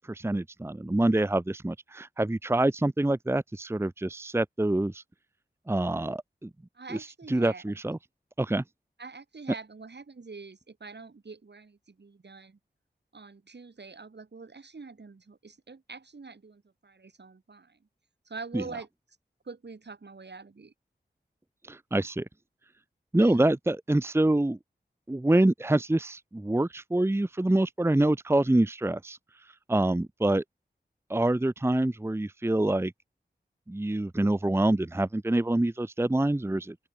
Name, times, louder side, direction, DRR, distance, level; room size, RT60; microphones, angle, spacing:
voice 1, 0.1-5.0 5.7-6.5 7.3-8.0 8.4-8.6 18.5-18.6 21.7-22.2 23.1-24.6 25.1-29.2 29.7-30.4 31.1-32.9 33.7-36.8, right 1 dB, 15° right, 0.7 m, -26 dB
voice 2, 6.7-7.8 9.0-12.6 13.1-17.8 18.2-18.9 19.4-20.7 23.1-23.4, right 4 dB, 70° right, 6.6 m, -45 dB
open air
wide cardioid pair, 55°, 18 cm